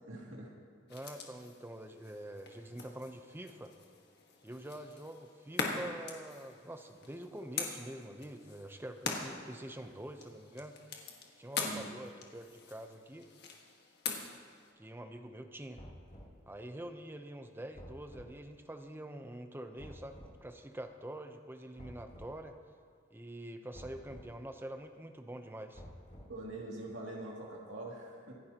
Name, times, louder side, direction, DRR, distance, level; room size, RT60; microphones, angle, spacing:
voice 1, 0.1-0.5 11.6-11.9 26.3-28.3, right 2 dB, 70° right, -3 dB, 2.6 m, -44 dB
sound 1, 0.9-14.7, left 4 dB, 55° left, 1.6 m, -43 dB
voice 2, 0.9-3.7 4.4-10.8 11.4-13.3 14.8-15.8 16.5-22.6 23.1-25.8, right 1 dB, 10° right, 6 dB, 0.7 m, -46 dB
sound 2, 15.7-16.4 17.7-18.3 19.8-20.4 21.8-22.3 23.7-24.3 25.7-26.5, equal, 35° left, 3.3 m, -51 dB
25.0 x 11.0 x 2.9 m, 2.1 s
head